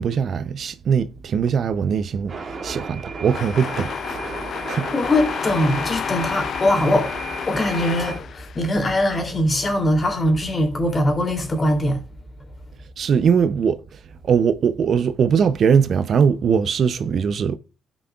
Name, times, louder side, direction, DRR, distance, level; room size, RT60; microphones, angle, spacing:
voice 1, 0.0-4.9 13.0-14.0 14.2-17.6, right 6 dB, 55° right, 0.6 m, -21 dB
sound 1, 2.3-8.2, right 4 dB, 40° right, 2.4 m, -35 dB
sound 2, 3.3-9.0, left 8 dB, 60° left, 0.5 m, -30 dB
voice 2, 4.9-7.2 7.5-12.0, left 1 dB, 30° left, 2.8 m, -21 dB
15.5 x 6.1 x 2.4 m
cardioid pair, 90°, 0 cm